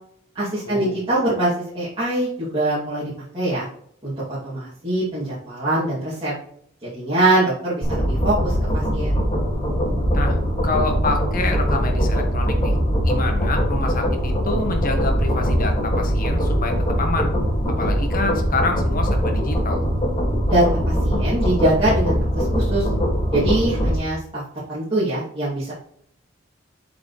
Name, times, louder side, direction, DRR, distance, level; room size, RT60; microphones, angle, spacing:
voice 1, 0.3-3.7 4.0-4.1 4.4-6.3 6.8-9.2 20.4-22.9 23.3-24.4 24.7-25.7, right 1 dB, 30° right, -12 dB, 2.8 m, -23 dB
sound 1, 7.8-24.0, equal, 30° left, 2.3 m, -21 dB
voice 2, 10.6-12.7 13.0-17.3 17.8-19.8, left 2 dB, 45° left, 4 dB, 1.4 m, -27 dB
8.2 x 5.1 x 3.3 m, 0.65 s
head